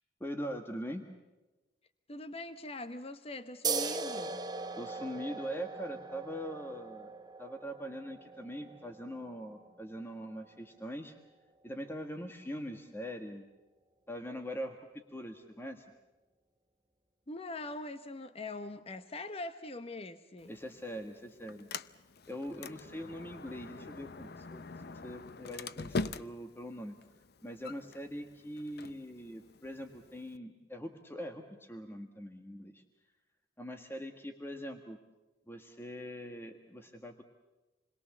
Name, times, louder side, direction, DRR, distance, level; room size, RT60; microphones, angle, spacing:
voice 1, 0.2-1.0 4.8-7.1 7.4-11.2 11.6-13.5 14.1-15.8 20.5-21.7 22.3-24.6 25.0-27.0 27.4-32.8 33.6-35.0 35.5-37.2, equal, 15° left, 1.5 m, -42 dB
voice 2, 2.1-4.4 17.3-20.5, left 2 dB, 35° left, 0.9 m, -42 dB
sound 1, 3.6-10.8, right 4 dB, 25° right, 1.2 m, -40 dB
Sliding door, 20.4-30.4, left 3 dB, 60° left, 0.7 m, -44 dB
28.0 x 22.0 x 7.3 m
head